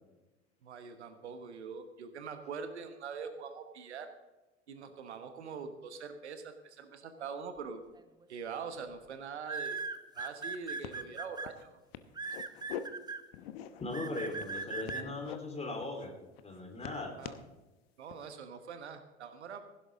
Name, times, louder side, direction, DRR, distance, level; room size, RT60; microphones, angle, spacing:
voice 1, 0.6-4.1 4.7-7.8 8.3-9.8 10.1-11.8 17.2-17.3 18.0-19.6, right 6 dB, 70° right, 9 dB, 1.3 m, -43 dB
sound 1, 8.0-8.2 9.4-11.5 12.2-13.2 13.9-15.0, right 4 dB, 10° right, 0.9 m, -38 dB
sound 2, 9.8-9.9 10.2-10.5 10.8-11.0 11.4-11.6 11.9-12.8 13.3-13.9 14.4-15.4 15.8-16.1 16.4-17.5 18.1-18.3, left 10 dB, 60° left, 1.0 m, -45 dB
voice 2, 13.8-16.1 16.4-17.1, left 2 dB, 20° left, 2 dB, 3.8 m, -39 dB
16.0 x 11.5 x 3.8 m, 1.1 s
figure-of-eight pair, 75°, 35 cm